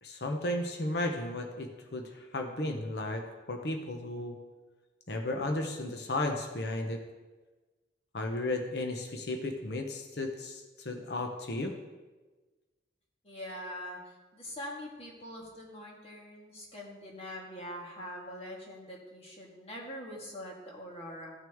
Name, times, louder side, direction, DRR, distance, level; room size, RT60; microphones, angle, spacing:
voice 1, 0.0-4.4 5.1-7.0 8.1-11.7, left 2 dB, 60° left, 3 dB, 0.8 m, -34 dB
voice 2, 13.2-21.3, equal, 30° left, -2 dB, 1.8 m, -43 dB
14.5 x 6.1 x 3.6 m, 1.3 s
head